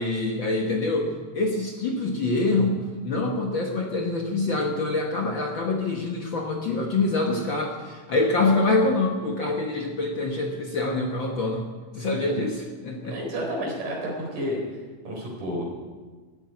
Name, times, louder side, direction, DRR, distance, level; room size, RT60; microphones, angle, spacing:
voice 1, 0.0-13.2, left 2 dB, 50° left, 1 dB, 1.6 m, -25 dB
voice 2, 13.0-14.6 15.0-15.6, equal, 80° right, -1 dB, 5.7 m, -30 dB
14.5 x 9.3 x 9.5 m, 1.4 s
omnidirectional pair, 3.6 m